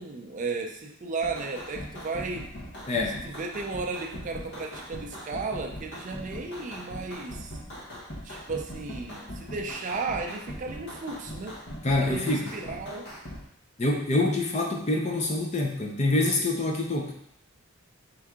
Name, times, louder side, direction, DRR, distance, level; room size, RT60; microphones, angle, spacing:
voice 1, 0.0-2.5 3.2-7.6 8.2-11.6 12.0-13.1, right 4 dB, 35° right, 3 dB, 0.4 m, -34 dB
sound 1, 1.2-13.4, equal, 55° left, 0.8 m, -40 dB
voice 2, 2.9-3.2 11.8-12.5 13.8-17.1, left 2 dB, 35° left, 1 dB, 0.6 m, -26 dB
4.5 x 2.7 x 3.5 m, 0.69 s
head